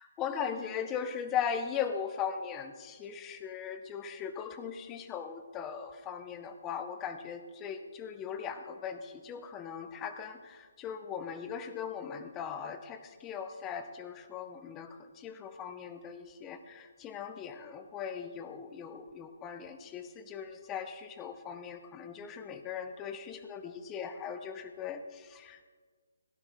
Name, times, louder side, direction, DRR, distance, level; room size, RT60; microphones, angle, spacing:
voice 1, 0.0-25.7, left 7 dB, 15° left, 9 dB, 0.6 m, -39 dB
16.0 x 12.0 x 3.5 m, 1.5 s
hypercardioid pair, 170°, 0 cm